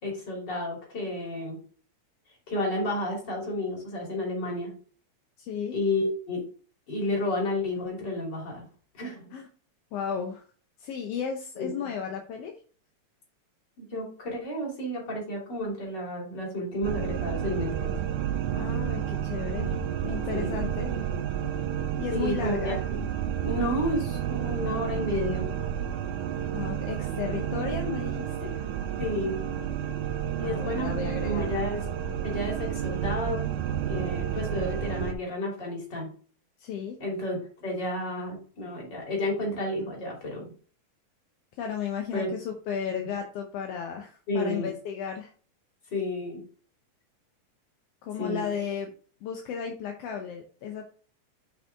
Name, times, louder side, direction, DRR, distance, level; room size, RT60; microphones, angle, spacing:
voice 1, 0.0-1.6 2.5-4.7 5.7-6.4 6.9-8.6 8.9-9.3 11.6-11.8 13.8-17.9 19.6-19.7 20.3-20.6 22.1-23.0 23.4-25.5 29.0-29.4 30.4-30.9 31.2-31.8 32.2-33.5 33.9-36.1 37.0-40.5 42.1-42.3 43.0-43.1 44.3-44.7 45.9-46.4 48.2-48.4, left 1 dB, 35° left, -2 dB, 3.4 m, -31 dB
voice 2, 5.4-5.7 9.3-9.4 9.9-10.4 10.8-12.5 18.5-19.7 20.0-21.0 22.0-22.8 26.5-28.5 30.4-31.5 36.6-36.9 41.6-45.3 48.0-48.9 49.2-50.8, left 7 dB, 70° left, 3 dB, 1.6 m, -34 dB
sound 1, 16.8-35.1, right 9 dB, 90° right, 2.2 m, -31 dB
7.1 x 5.7 x 3.5 m, 0.42 s
omnidirectional pair, 3.4 m